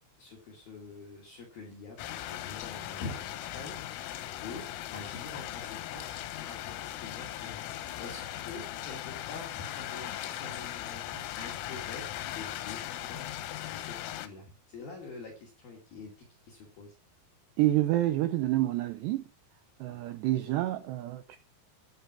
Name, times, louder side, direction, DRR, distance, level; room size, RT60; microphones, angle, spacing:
voice 1, 0.2-12.0 12.4-13.3 13.7-16.9 19.9-20.0, left 3 dB, 55° left, 3.8 m, -46 dB
sound 1, 2.0-14.3, left 13 dB, 90° left, 3.8 m, -39 dB
voice 2, 17.6-19.2 19.8-21.4, right 15 dB, 85° right, 2.5 m, -28 dB
11.0 x 9.9 x 6.0 m
omnidirectional pair, 5.8 m